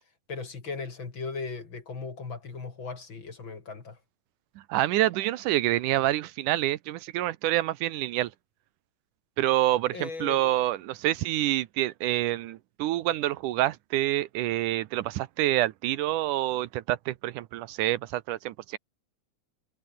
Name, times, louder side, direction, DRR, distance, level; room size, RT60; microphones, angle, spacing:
voice 1, 0.3-4.0 9.9-10.6, left 4 dB, 40° left, 3.5 m, -37 dB
voice 2, 4.7-8.3 9.4-18.8, right 15 dB, 80° right, 2.3 m, -27 dB
omnidirectional pair, 3.7 m